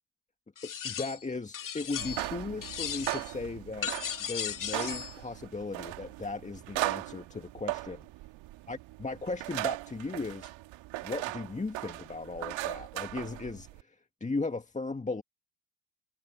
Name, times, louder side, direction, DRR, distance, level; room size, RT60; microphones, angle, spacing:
sound 1, 0.6-1.2 1.5-2.3 2.6-3.3 3.8-5.1, left 9 dB, 40° left, 2.2 m, -36 dB
voice 1, 0.6-3.9 4.2-8.1 8.7-10.5 11.0-15.2, left 3 dB, 15° left, 1.8 m, -37 dB
sound 2, 1.9-13.8, right 17 dB, 65° right, 2.1 m, -38 dB
hypercardioid pair, 75°, 49 cm